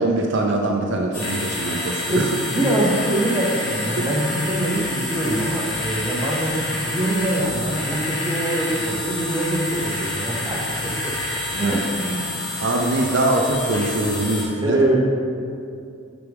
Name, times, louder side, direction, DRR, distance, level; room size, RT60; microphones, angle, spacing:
voice 1, 0.0-2.2 4.0-4.1 11.5-11.8 12.6-14.8, right 2 dB, 55° right, 1 dB, 0.5 m, -23 dB
sound 1, 1.1-14.4, left 2 dB, 80° left, 1.2 m, -28 dB
voice 2, 2.1-11.2 11.5-12.4 14.6-15.0, right 1 dB, 15° right, -3 dB, 0.8 m, -24 dB
6.6 x 5.9 x 3.5 m, 2.4 s
head